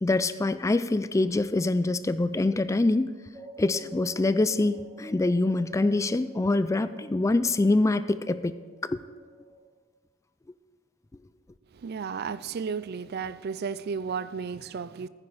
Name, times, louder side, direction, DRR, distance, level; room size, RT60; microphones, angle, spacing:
voice 1, 0.0-3.1 3.6-8.6 8.8-9.0, left 2 dB, 15° left, 0.3 m, -25 dB
sound 1, 3.3-9.8, right 3 dB, 15° right, 1.7 m, -49 dB
voice 2, 11.7-15.1, right 6 dB, 55° right, 0.4 m, -33 dB
15.0 x 9.9 x 4.1 m
head